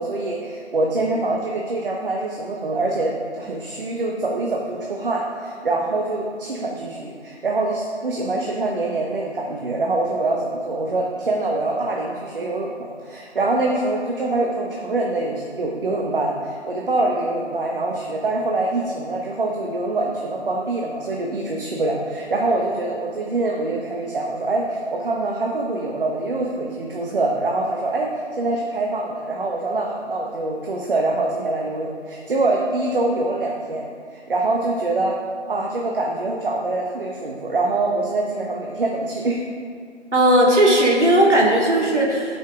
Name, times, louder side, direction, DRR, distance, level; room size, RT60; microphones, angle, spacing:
voice 1, 0.0-28.1 28.4-35.1 35.5-39.4, right 2 dB, 50° right, -1 dB, 1.0 m, -24 dB
voice 2, 40.1-42.4, right 1 dB, 90° right, -2 dB, 2.4 m, -16 dB
12.5 x 5.6 x 3.6 m, 2.3 s
figure-of-eight pair, 160°, 34 cm